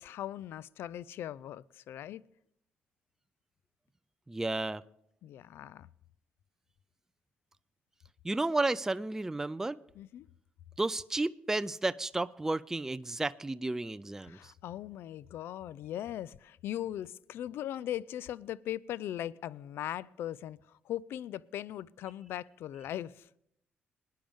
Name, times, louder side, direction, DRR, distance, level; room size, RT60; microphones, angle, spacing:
voice 1, 0.0-2.2 5.2-5.9 10.0-10.3 14.2-23.3, left 12 dB, 75° left, 0.4 m, -39 dB
voice 2, 4.3-4.8 8.2-9.8 10.8-14.4, right 2 dB, 10° right, 0.4 m, -32 dB
20.5 x 10.5 x 3.6 m
cardioid pair, 80°, 4 cm